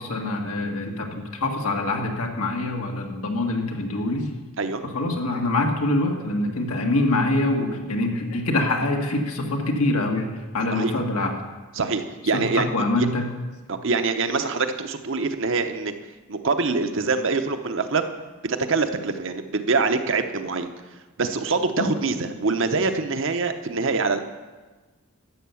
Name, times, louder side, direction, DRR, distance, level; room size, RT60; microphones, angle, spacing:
voice 1, 0.0-4.3 4.9-11.3 12.3-13.3 21.8-21.9, left 2 dB, 90° left, 2 dB, 1.8 m, -25 dB
voice 2, 11.8-12.7 13.0-13.1 13.7-15.9 16.3-18.1 18.4-20.7 21.2-24.2, right 4 dB, 60° right, 7 dB, 0.8 m, -24 dB
12.5 x 8.0 x 7.0 m, 1.3 s
head